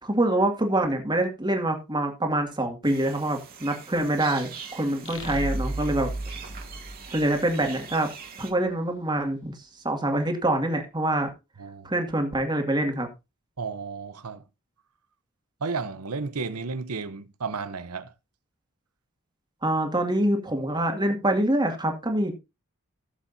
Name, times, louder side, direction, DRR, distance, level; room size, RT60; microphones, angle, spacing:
voice 1, 0.0-6.1 7.1-8.1 8.4-9.5 9.8-11.3 11.8-13.1 19.6-22.3, right 1 dB, 20° right, 2.1 m, -25 dB
sound 1, 2.8-8.5, right 6 dB, 40° right, 2.4 m, -43 dB
sound 2, 5.1-7.7, right 1 dB, 60° left, 2.5 m, -33 dB
voice 2, 11.6-11.9 13.6-14.4 15.6-18.1, right 4 dB, 80° right, 0.9 m, -33 dB
17.5 x 7.2 x 2.7 m
head